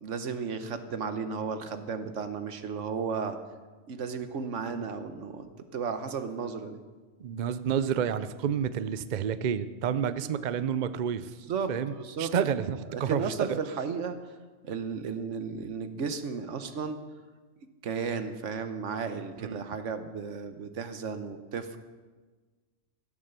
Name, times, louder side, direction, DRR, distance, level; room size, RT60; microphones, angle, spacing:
voice 1, 0.0-3.4 3.9-6.8 10.2-10.3 11.5-12.3 12.9-14.2 14.6-17.0 17.8-21.8, right 5 dB, 75° right, 9 dB, 1.3 m, -34 dB
voice 2, 7.2-11.3 11.7-11.9 12.2-13.6 19.4-19.6, right 8 dB, 55° right, 13 dB, 0.5 m, -29 dB
17.0 x 7.3 x 6.7 m, 1.3 s
omnidirectional pair, 1.3 m